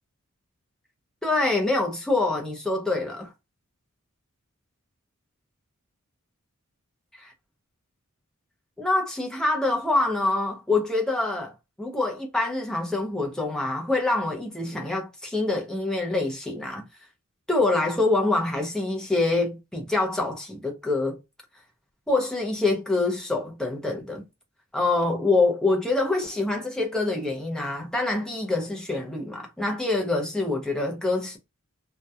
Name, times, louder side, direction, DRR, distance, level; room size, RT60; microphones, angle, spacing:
voice 1, 1.2-3.3 8.8-16.8 17.5-21.2 22.1-24.2 24.7-31.4, left 2 dB, 5° left, 0.5 m, -25 dB
2.7 x 2.1 x 2.3 m
head